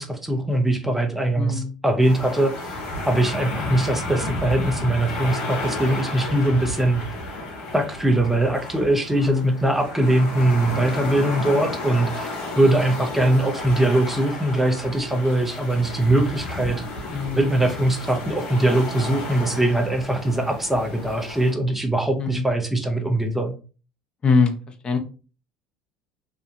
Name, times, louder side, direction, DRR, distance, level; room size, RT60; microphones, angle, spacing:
voice 1, 0.0-2.8 3.1-7.0 7.7-12.3 12.5-16.8 17.3-23.5, right 1 dB, 5° right, 4 dB, 0.7 m, -21 dB
voice 2, 1.4-1.7 3.6-3.7 9.2-9.6 17.1-17.5 22.2-22.5 24.2-24.5 24.8-25.0, left 5 dB, 35° left, 5 dB, 0.7 m, -23 dB
sound 1, 2.0-21.5, left 2 dB, 70° left, 1.2 m, -32 dB
2.8 x 2.2 x 2.7 m, 0.35 s
hypercardioid pair, 70°, 3 cm